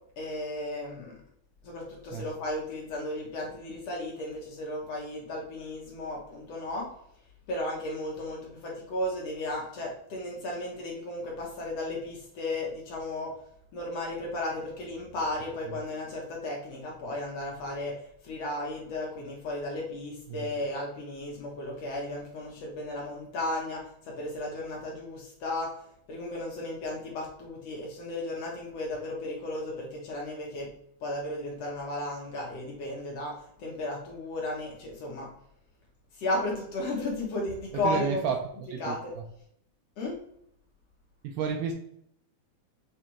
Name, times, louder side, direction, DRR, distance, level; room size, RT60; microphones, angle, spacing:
voice 1, 0.2-1.2 1.6-6.9 7.5-13.3 13.7-18.0 18.2-25.7 26.1-30.7 31.0-35.3 36.2-38.2 38.8-39.1 40.0-40.2, left 1 dB, 65° left, -2 dB, 1.8 m, -34 dB
voice 2, 37.8-38.4 38.7-39.0 41.2-41.7, right 6 dB, 85° right, 3 dB, 1.5 m, -30 dB
6.7 x 2.5 x 2.9 m, 0.71 s
omnidirectional pair, 3.6 m